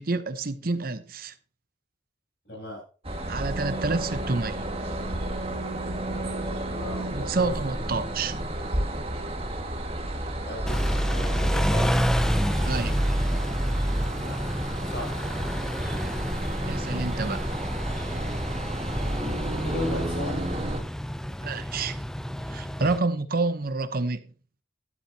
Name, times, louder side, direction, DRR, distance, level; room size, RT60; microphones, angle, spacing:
voice 1, 0.0-1.3 3.3-4.7 7.1-8.3 12.6-13.0 16.7-17.5 21.4-22.0 22.5-24.3, right 3 dB, 50° right, 0.8 m, -28 dB
voice 2, 2.5-2.8 6.7-7.9 10.4-10.9 11.1-12.0 14.1-14.4 14.8-15.2 19.5-20.5 22.9-23.1, equal, 60° left, 7.6 m, -37 dB
sound 1, 3.0-20.8, right 1 dB, 30° right, 1.8 m, -30 dB
Car / Idling / Accelerating revving vroom, 10.7-23.0, equal, 5° left, 0.4 m, -30 dB
13.0 x 11.0 x 2.8 m
head